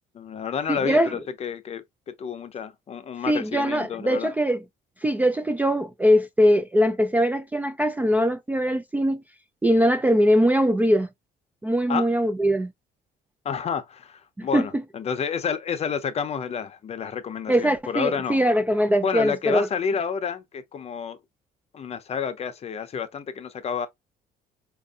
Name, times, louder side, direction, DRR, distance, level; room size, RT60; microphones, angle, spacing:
voice 1, 0.1-1.8 2.2-4.3 11.9-12.1 13.4-18.4 19.0-21.2 21.7-23.9, left 6 dB, 40° left, 0.6 m, -30 dB
voice 2, 0.7-1.1 3.3-4.6 5.0-9.2 9.6-11.1 11.6-12.7 14.4-14.7 17.5-19.7, equal, 10° right, 0.3 m, -21 dB
4.6 x 2.6 x 2.3 m
cardioid pair, 110°, 17 cm